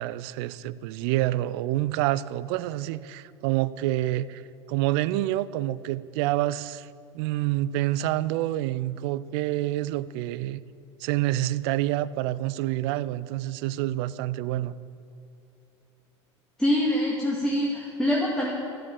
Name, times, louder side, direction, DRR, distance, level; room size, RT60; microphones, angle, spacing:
voice 1, 0.0-4.4 4.7-6.9 7.1-10.6 11.0-14.8, right 15 dB, 55° right, 0.5 m, -27 dB
voice 2, 16.6-18.5, left 1 dB, 5° left, 1.9 m, -24 dB
13.0 x 7.5 x 7.4 m
figure-of-eight pair, 75°, 15 cm